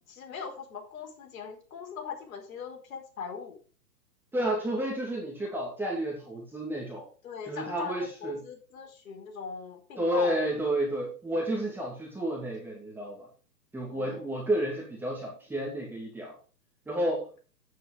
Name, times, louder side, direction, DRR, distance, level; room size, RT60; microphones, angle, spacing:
voice 1, 0.1-3.6 7.2-10.5 13.9-14.3, left 6 dB, 55° left, 2 dB, 4.6 m, -40 dB
voice 2, 4.3-7.1 7.4-8.4 10.0-13.3 13.7-16.3 16.9-17.3, right 1 dB, 5° right, -3 dB, 2.5 m, -31 dB
9.3 x 9.2 x 5.1 m, 0.39 s
hypercardioid pair, 150°, 50 cm